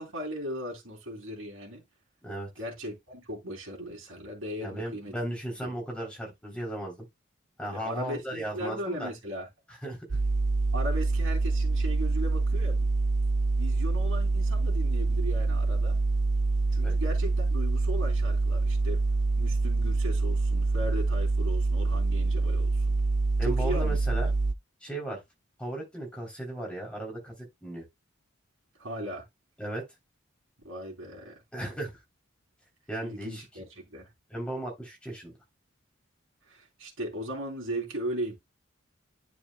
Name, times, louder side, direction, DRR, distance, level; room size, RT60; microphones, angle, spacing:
voice 1, 0.0-1.8 2.6-5.1 5.6-5.7 7.7-9.5 10.7-12.9 13.6-16.0 16.7-19.0 19.4-22.9 23.4-24.0 28.8-29.2 30.6-31.4 33.0-34.1 36.5-38.4, equal, 85° right, 3.1 m, -37 dB
voice 2, 4.6-7.0 7.6-9.1 9.8-10.0 16.8-16.9 23.4-24.3 24.8-25.2 25.6-27.3 27.6-27.8 29.6-29.8 31.5-31.9 32.9-33.4 34.3-35.3, right 1 dB, 5° left, 3.2 m, -36 dB
sound 1, 10.1-24.5, right 3 dB, 35° right, 0.4 m, -26 dB
9.9 x 5.0 x 2.2 m
head